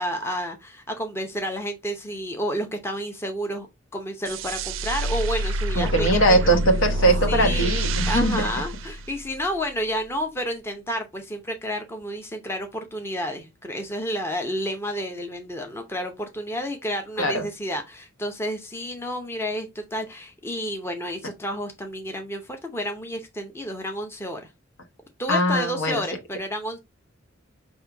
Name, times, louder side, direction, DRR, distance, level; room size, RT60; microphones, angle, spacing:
voice 1, 0.0-3.7 3.9-6.6 7.3-7.7 8.1-24.5 25.2-26.8, equal, 10° left, 0.7 m, -30 dB
sound 1, 4.2-9.6, right 1 dB, 70° right, 0.4 m, -27 dB
voice 2, 5.7-8.4 17.2-17.5 25.3-26.0, right 1 dB, 70° left, 1.2 m, -21 dB
5.5 x 2.7 x 3.3 m
head